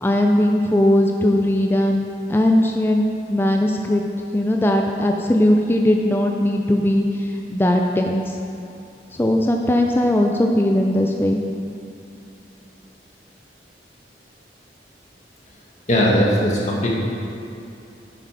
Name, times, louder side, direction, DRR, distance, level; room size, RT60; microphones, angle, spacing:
voice 1, 0.0-2.0 2.3-4.0 4.3-7.1 7.5-8.4 9.2-11.4, left 1 dB, 15° left, 2 dB, 0.4 m, -19 dB
voice 2, 15.9-16.9, equal, 40° left, -4 dB, 1.8 m, -18 dB
8.8 x 7.5 x 5.1 m, 2.7 s
head